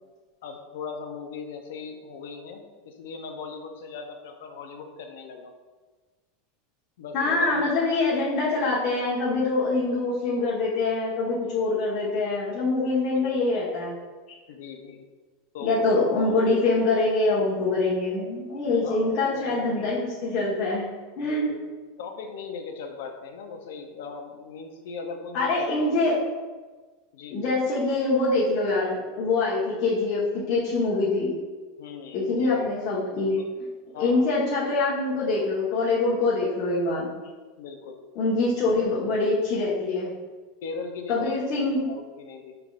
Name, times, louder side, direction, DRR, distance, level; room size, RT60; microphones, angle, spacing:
voice 1, 0.4-5.6 7.0-7.7 13.1-13.3 14.5-15.0 15.5-15.8 18.8-19.9 21.2-21.6 22.0-26.0 27.1-27.4 31.8-32.7 33.1-33.5 33.9-34.2 37.6-38.0 38.6-38.8 40.6-41.4 41.9-42.6, left 5 dB, 75° left, 5 dB, 0.6 m, -39 dB
voice 2, 7.1-14.0 15.6-21.5 25.3-26.2 27.3-31.3 32.1-33.4 34.0-37.1 38.1-40.1 41.1-41.9, left 3 dB, 50° left, -7 dB, 1.1 m, -24 dB
4.9 x 3.4 x 2.4 m, 1.3 s
hypercardioid pair, 110°, 0 cm